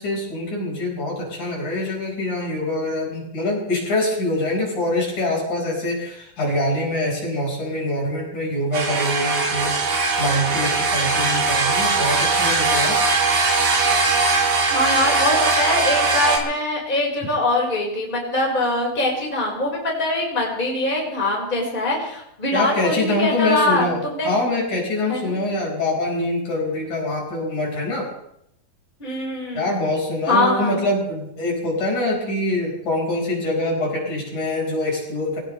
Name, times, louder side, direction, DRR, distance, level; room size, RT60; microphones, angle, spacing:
voice 1, 0.0-9.8 10.2-13.0 22.5-28.1 29.5-35.4, left 1 dB, 55° left, -2 dB, 6.4 m, -24 dB
sound 1, 8.7-16.4, right 3 dB, 90° right, 5.0 m, -20 dB
voice 2, 14.7-24.3 25.1-25.4 29.0-29.7 30.3-30.8, left 2 dB, 15° left, -2 dB, 4.8 m, -23 dB
23.0 x 18.0 x 3.3 m, 0.76 s
omnidirectional pair, 4.2 m